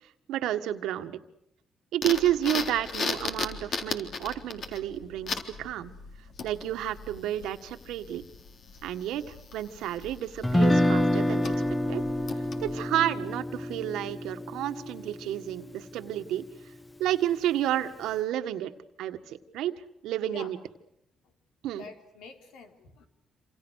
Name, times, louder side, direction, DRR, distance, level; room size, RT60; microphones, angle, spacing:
voice 1, 0.3-1.2 1.9-5.9 6.4-8.2 8.8-11.5 11.9-12.0 12.6-16.5 17.0-18.7 19.0-19.7 20.0-20.6 21.6-21.9, right 12 dB, 90° right, 9 dB, 1.8 m, -30 dB
sound 1, 2.0-12.8, left 4 dB, 60° left, 3.7 m, -38 dB
Guitar, 10.4-16.6, left 1 dB, 10° left, 1.5 m, -28 dB
voice 2, 21.8-23.1, left 4 dB, 90° left, 6 dB, 3.9 m, -46 dB
27.5 x 27.5 x 6.6 m, 0.78 s
cardioid pair, 90°, 0 cm